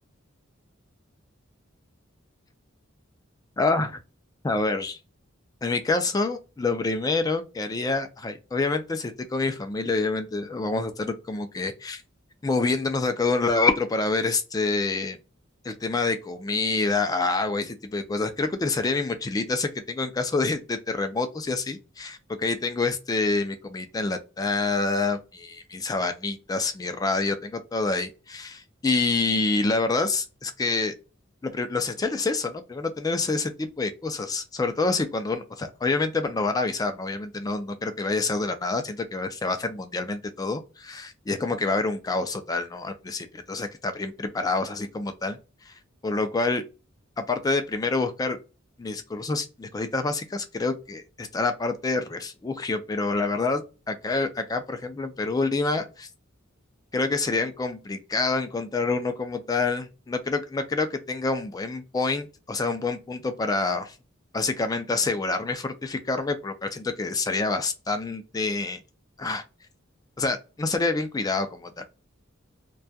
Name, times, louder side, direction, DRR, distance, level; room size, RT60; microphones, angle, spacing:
voice 1, 3.6-4.0 4.4-5.0 5.6-12.0 12.4-15.2 15.6-30.9 31.4-45.4 45.6-45.7 46.0-46.6 47.2-48.4 48.8-56.1 56.9-64.0 64.3-68.8 69.2-69.4 70.2-71.8, left 3 dB, 20° left, 0.3 m, -27 dB
2.2 x 2.1 x 2.6 m
head